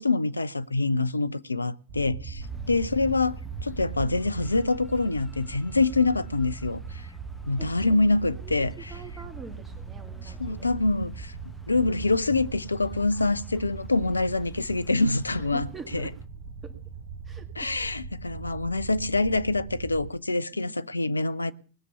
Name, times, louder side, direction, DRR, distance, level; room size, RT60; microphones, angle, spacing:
voice 1, 0.0-7.1 7.5-8.7 10.2-11.3 11.7-15.7 15.9-16.1 17.6-21.5, left 3 dB, 80° left, 0.5 m, -25 dB
sound 1, 1.9-20.1, right 5 dB, 50° right, 1.2 m, -40 dB
sound 2, 2.4-16.3, left 1 dB, 5° left, 1.3 m, -49 dB
voice 2, 7.6-8.0 8.4-8.6 8.9-10.7 13.2-13.3 15.4-16.1 16.6-16.7 17.3-17.7, right 4 dB, 20° right, 2.1 m, -45 dB
19.5 x 6.7 x 7.0 m
figure-of-eight pair, 90°, 0 cm